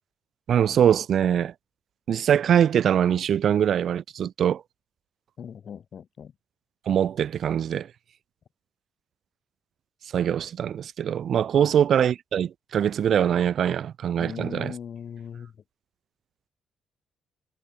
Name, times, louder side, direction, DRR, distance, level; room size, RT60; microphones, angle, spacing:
voice 1, 0.5-1.5 2.1-4.6 6.9-7.9 10.1-14.7, right 9 dB, 60° right, 0.4 m, -23 dB
voice 2, 5.4-6.3 11.5-11.7 14.2-15.6, left 7 dB, 55° left, 2.8 m, -39 dB
cardioid pair, 90°, 0 cm